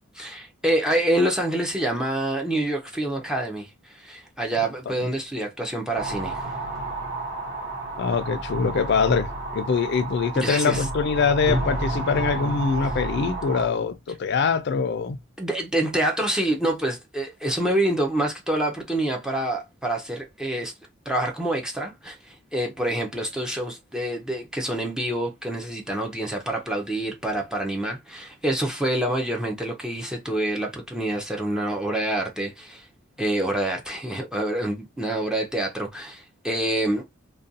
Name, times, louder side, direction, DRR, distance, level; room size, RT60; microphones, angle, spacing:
voice 1, 0.2-6.5 10.3-10.9 15.4-20.7 21.1-32.9 33.2-37.1, right 1 dB, 5° right, 0.4 m, -27 dB
sound 1, 6.0-13.7, right 2 dB, 55° right, 1.0 m, -30 dB
voice 2, 8.0-15.2, left 5 dB, 55° left, 0.4 m, -23 dB
2.5 x 2.2 x 2.6 m
head